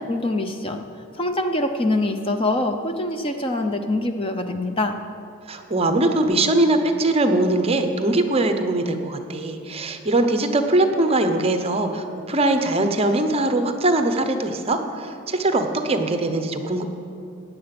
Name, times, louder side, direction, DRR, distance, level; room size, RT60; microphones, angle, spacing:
voice 1, 0.1-0.8 1.1-5.0, left 2 dB, 25° left, 6 dB, 0.6 m, -24 dB
voice 2, 5.5-16.8, right 2 dB, 25° right, 7 dB, 0.8 m, -21 dB
15.5 x 9.7 x 6.0 m, 2.6 s
head